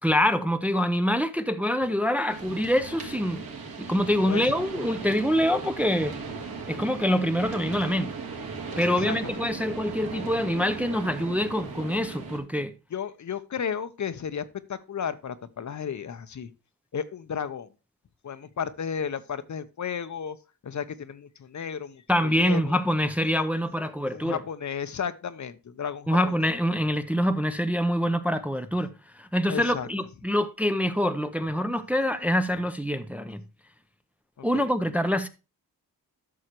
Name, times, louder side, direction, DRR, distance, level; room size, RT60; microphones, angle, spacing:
voice 1, 0.0-3.4 3.8-6.2 6.7-8.1 8.8-12.7 22.1-24.4 26.1-33.4 34.4-35.3, equal, 5° right, 0.6 m, -25 dB
sound 1, 2.3-12.4, right 4 dB, 65° right, 2.8 m, -37 dB
voice 2, 8.8-9.2 12.9-16.5 16.9-17.7 18.2-20.4 20.6-22.8 24.1-26.2 29.5-29.9 34.4-34.6, left 7 dB, 50° left, 0.8 m, -33 dB
12.5 x 6.4 x 2.9 m
wide cardioid pair, 125°, 37 cm